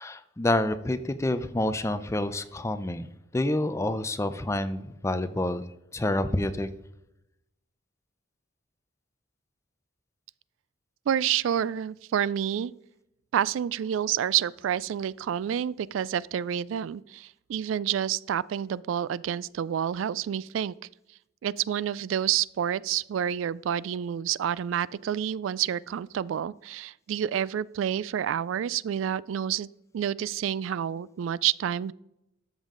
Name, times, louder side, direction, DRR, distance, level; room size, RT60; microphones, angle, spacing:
voice 1, 0.0-3.1 3.3-5.6 5.9-6.7, left 1 dB, 15° left, 11 dB, 0.5 m, -28 dB
voice 2, 11.1-12.7 13.3-20.7 21.4-29.7 29.9-31.9, right 9 dB, 85° right, 21 dB, 0.3 m, -28 dB
13.0 x 7.3 x 3.8 m, 0.86 s
head